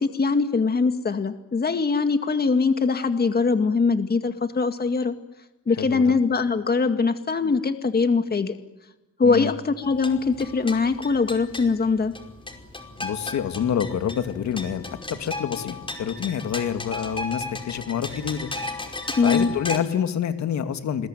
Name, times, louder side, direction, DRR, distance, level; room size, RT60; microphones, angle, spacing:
voice 1, 0.0-5.1 5.7-8.5 9.2-12.1 19.2-19.5, left 4 dB, 30° left, 8 dB, 2.1 m, -22 dB
voice 2, 5.8-6.1 9.2-9.5 13.0-18.5 19.2-21.1, left 8 dB, 65° left, 8 dB, 2.4 m, -27 dB
sound 1, 9.8-19.8, left 2 dB, 15° left, 5.2 m, -35 dB
29.0 x 21.5 x 9.2 m, 0.99 s
cardioid pair, 90°, 30 cm